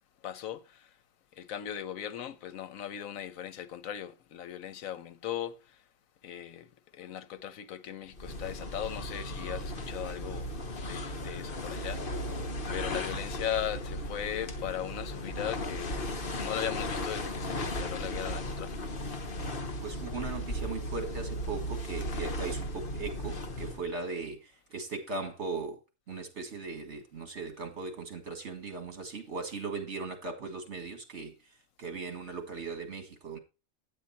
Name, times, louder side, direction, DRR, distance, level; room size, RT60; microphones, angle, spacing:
voice 1, 0.2-0.9 1.3-5.8 6.2-12.0 12.7-16.0 16.3-19.8, left 10 dB, 85° left, 1.2 m, -38 dB
sound 1, 8.1-24.0, left 1 dB, 45° left, 1.3 m, -36 dB
voice 2, 19.8-25.8 26.1-31.3 31.8-33.4, right 4 dB, 60° right, 2.3 m, -38 dB
9.0 x 8.6 x 4.2 m
omnidirectional pair, 1.4 m